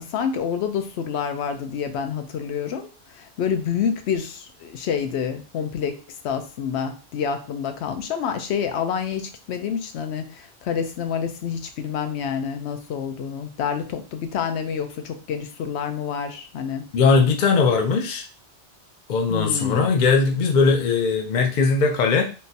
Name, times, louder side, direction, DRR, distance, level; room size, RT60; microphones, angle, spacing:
voice 1, 0.0-5.9 6.2-16.8 19.3-19.9, left 7 dB, 85° left, 7 dB, 0.9 m, -28 dB
voice 2, 16.9-18.2 19.1-22.2, left 4 dB, 55° left, 3 dB, 0.6 m, -19 dB
3.7 x 2.5 x 2.6 m, 0.35 s
omnidirectional pair, 1.1 m